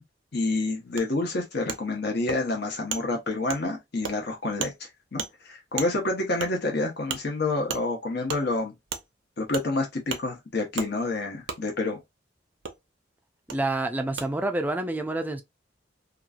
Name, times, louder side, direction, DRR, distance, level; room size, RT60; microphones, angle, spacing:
voice 1, 0.3-4.7 5.1-8.7 9.4-12.0, left 2 dB, 60° left, 0.9 m, -28 dB
Wood, 1.0-1.1 1.7-1.8 2.3-2.4 2.9-3.0 3.5-3.6 4.0-4.1 4.6-4.7 5.2-5.3 5.8-5.9 6.4-6.5 7.1-7.2 7.7-7.8 8.3-8.4 8.9-9.0 9.5-9.7 10.1-10.2 10.8-10.9 11.5-11.6 12.6-12.7 13.5-13.6 14.2-14.3, right 6 dB, 85° right, 0.6 m, -33 dB
voice 2, 13.5-15.4, right 2 dB, 10° right, 0.4 m, -28 dB
3.0 x 2.4 x 2.4 m
head